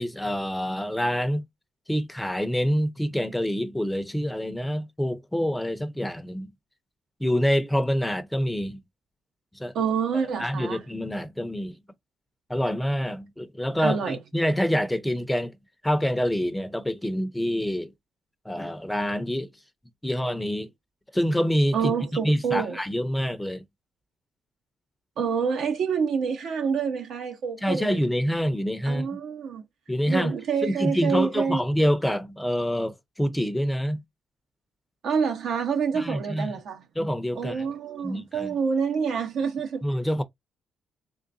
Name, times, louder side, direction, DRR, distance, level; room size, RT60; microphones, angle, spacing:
voice 1, 0.0-1.4 1.9-6.5 7.2-8.8 9.6-9.7 10.4-11.7 12.5-15.5 15.8-17.9 18.4-19.5 20.0-20.7 21.1-21.9 22.2-23.6 27.6-29.1 29.9-30.3 30.6-34.0 35.9-36.5 37.0-37.7 38.0-38.5 39.8-40.2, equal, 5° left, 0.7 m, -26 dB
voice 2, 9.7-10.8 13.8-14.2 21.7-22.8 25.2-28.0 28.9-29.6 30.1-31.6 35.0-36.9 37.3-39.8, right 6 dB, 70° right, 0.9 m, -27 dB
3.8 x 3.3 x 2.6 m
cardioid pair, 90°, 0 cm